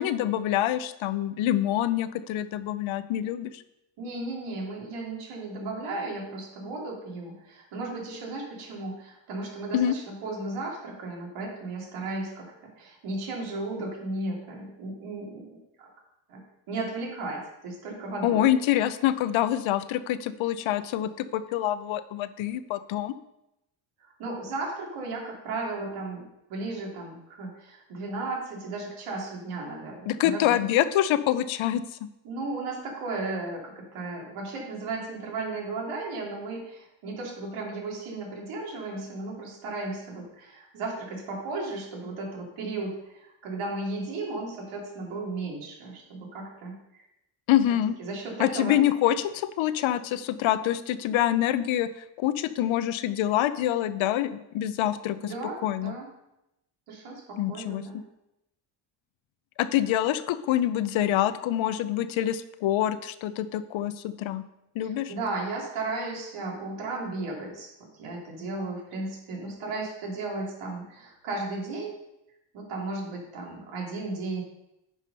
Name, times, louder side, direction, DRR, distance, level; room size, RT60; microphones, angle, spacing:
voice 1, 0.0-3.6 9.7-9.9 18.2-23.1 30.1-31.8 47.5-47.9 48.4-51.9 52.2-55.3 55.6-55.9 57.4-57.8 59.6-64.4 64.8-65.1, left 12 dB, 70° left, 14 dB, 0.7 m, -26 dB
voice 2, 4.0-12.5 12.8-15.5 15.8-15.9 16.3-16.4 16.7-18.5 24.0-30.6 32.2-47.0 47.7-48.8 55.2-56.1 56.9-58.0 64.8-71.9 72.5-74.4, right 2 dB, 85° right, -2 dB, 2.8 m, -35 dB
9.5 x 4.9 x 5.4 m, 0.88 s
cardioid pair, 115°, 49 cm